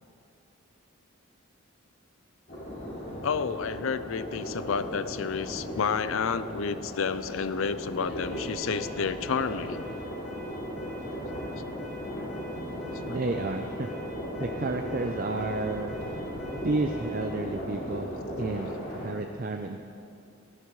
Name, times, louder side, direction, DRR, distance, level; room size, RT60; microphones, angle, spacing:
sound 1, 2.5-19.1, equal, 50° left, 3.1 m, -37 dB
voice 1, 3.2-9.9, left 6 dB, 70° left, 13 dB, 0.5 m, -30 dB
Alarm, 8.2-17.4, equal, 15° left, 3.5 m, -46 dB
voice 2, 13.1-13.9 14.4-16.0 16.5-18.1 18.4-19.8, right 2 dB, 40° right, 4 dB, 0.5 m, -31 dB
18.5 x 15.0 x 3.2 m, 2.6 s
head